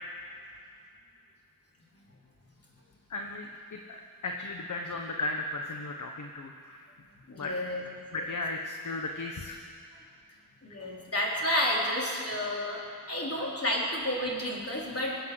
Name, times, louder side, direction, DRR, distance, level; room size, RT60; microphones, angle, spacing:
voice 1, 3.1-6.8 7.4-7.5 8.1-9.6, left 2 dB, 55° left, 3 dB, 1.2 m, -36 dB
voice 2, 7.3-7.8 8.1-8.2 10.6-15.2, left 1 dB, 40° left, -3 dB, 4.1 m, -31 dB
21.0 x 8.7 x 7.9 m, 2.4 s
wide cardioid pair, 70°, 36 cm